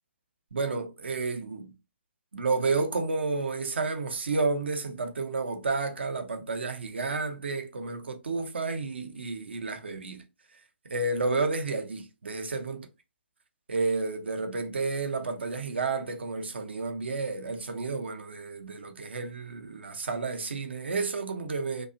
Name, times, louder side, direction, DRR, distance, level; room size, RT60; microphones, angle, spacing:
voice 1, 0.5-1.7 2.3-10.2 10.8-12.9 13.7-21.9, right 3 dB, 65° right, 0.6 m, -31 dB
2.7 x 2.3 x 2.5 m
figure-of-eight pair, 135°, 6 cm